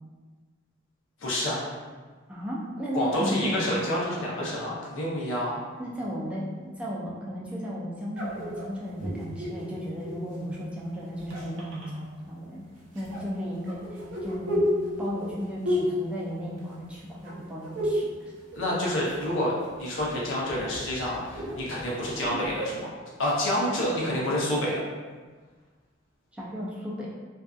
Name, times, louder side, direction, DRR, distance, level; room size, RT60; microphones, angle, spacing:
voice 1, 1.2-1.6 2.9-5.6 18.5-22.9 23.2-24.7, left 1 dB, 75° left, -5 dB, 0.7 m, -28 dB
voice 2, 2.3-3.7 5.8-12.6 12.9-14.6 15.0-18.1 26.4-27.1, equal, 5° right, -6 dB, 0.4 m, -34 dB
sound 1, 8.1-10.3 11.1-11.9 13.0-17.0 17.2-18.1 18.4-19.3 19.6-22.8, equal, 70° right, 0.6 m, -32 dB
2.6 x 2.3 x 2.3 m, 1.4 s
head